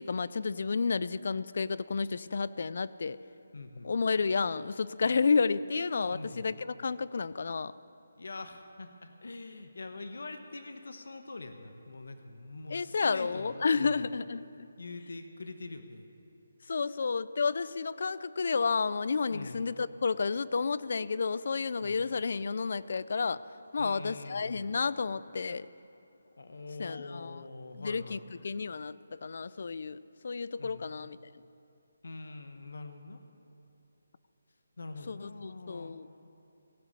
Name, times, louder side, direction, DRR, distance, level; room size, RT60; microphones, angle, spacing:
voice 1, 0.0-3.2 3.8-7.7 12.7-14.7 16.7-23.4 23.7-25.7 26.8-27.4 27.8-28.2 28.4-30.0 30.2-31.2 35.1-36.1, left 5 dB, 50° left, 18 dB, 0.3 m, -31 dB
voice 2, 3.5-3.9 6.1-6.5 8.2-14.1 14.8-16.1 19.3-19.7 21.8-22.1 23.8-24.8 26.4-28.2 30.6-31.0 32.0-33.2 34.8-36.0, left 3 dB, 75° left, 7 dB, 1.1 m, -44 dB
17.5 x 6.2 x 8.1 m, 2.9 s
hypercardioid pair, 175°, 0 cm